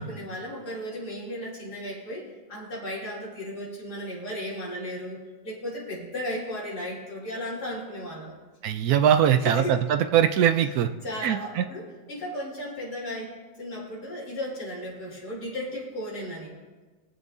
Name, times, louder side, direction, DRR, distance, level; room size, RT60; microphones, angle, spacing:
voice 1, 0.0-8.3 9.4-9.9 10.6-16.5, equal, 60° left, -6 dB, 3.4 m, -35 dB
voice 2, 8.6-9.6 9.9-10.9 11.2-11.6, right 9 dB, 70° right, 8 dB, 0.9 m, -21 dB
22.0 x 7.6 x 2.7 m, 1.3 s
omnidirectional pair, 2.0 m